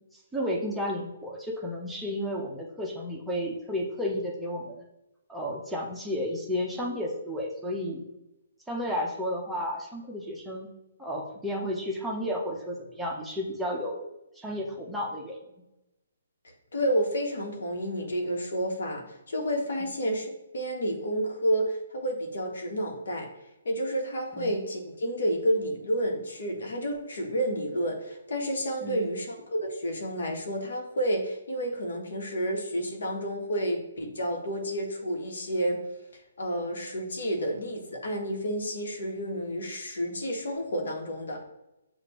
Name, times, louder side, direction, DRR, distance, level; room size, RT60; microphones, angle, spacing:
voice 1, 0.1-4.8 5.3-8.0 8.7-10.7 11.0-14.1 14.4-15.4 24.4-24.5 28.8-29.1, equal, 5° right, -3 dB, 0.8 m, -32 dB
voice 2, 16.7-23.3 23.6-35.8 36.4-41.4, equal, 70° left, 2 dB, 1.2 m, -30 dB
6.8 x 2.5 x 3.1 m, 0.92 s
hypercardioid pair, 145°, 0 cm